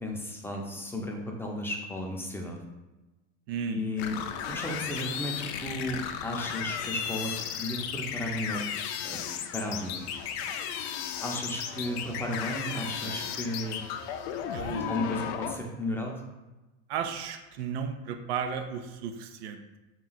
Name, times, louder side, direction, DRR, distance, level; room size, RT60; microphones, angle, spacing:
voice 1, 0.0-2.6 3.7-4.2 4.5-8.7 9.0-9.2 9.5-10.0 11.2-13.8 14.7-16.2, left 1 dB, 5° left, 0 dB, 0.6 m, -34 dB
voice 2, 3.5-3.8 13.0-13.3 14.5-15.0 16.9-19.8, right 7 dB, 70° right, 6 dB, 0.5 m, -35 dB
sound 1, 4.0-15.6, left 8 dB, 70° left, 0.5 m, -35 dB
3.4 x 3.1 x 4.0 m, 1.1 s
supercardioid pair, 115°, 33 cm